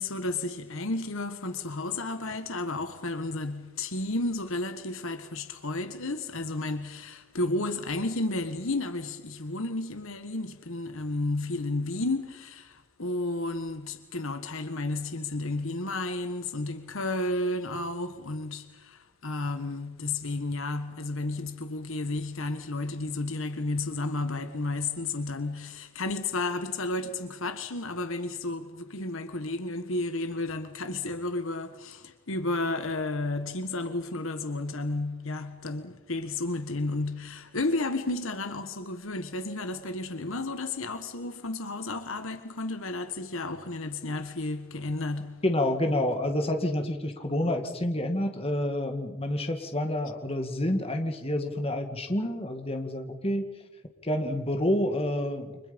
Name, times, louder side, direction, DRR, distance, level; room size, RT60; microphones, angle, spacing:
voice 1, 0.0-45.4, left 2 dB, 65° left, 1.5 m, -32 dB
voice 2, 45.4-53.4 54.0-55.6, left 1 dB, 25° left, 2.2 m, -28 dB
29.5 x 25.5 x 5.4 m
head